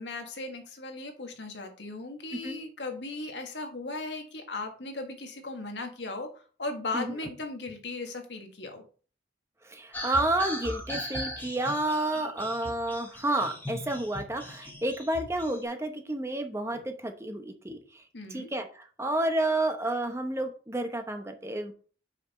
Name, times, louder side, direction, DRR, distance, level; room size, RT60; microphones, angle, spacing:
voice 1, 0.0-8.8 18.1-18.5, left 3 dB, 80° left, 4 dB, 1.6 m, -37 dB
voice 2, 9.6-18.0 18.3-21.7, right 1 dB, 15° right, 6 dB, 0.8 m, -30 dB
sound 1, 9.9-15.6, left 1 dB, 10° left, 1.3 m, -39 dB
5.9 x 5.7 x 4.2 m, 0.40 s
head